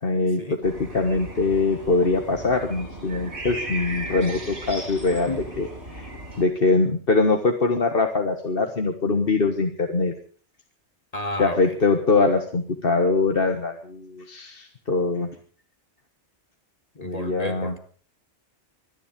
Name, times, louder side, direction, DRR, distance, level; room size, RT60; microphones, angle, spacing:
voice 1, 0.0-6.1 6.4-10.1 11.4-15.3 17.0-17.7, left 3 dB, 55° left, 5 dB, 1.6 m, -23 dB
sound 1, 0.6-6.4, right 1 dB, 70° right, 5.5 m, -36 dB
voice 2, 11.1-11.7 17.0-17.8, left 1 dB, 35° left, 7 dB, 1.4 m, -31 dB
26.0 x 10.5 x 5.2 m, 0.43 s
omnidirectional pair, 1.2 m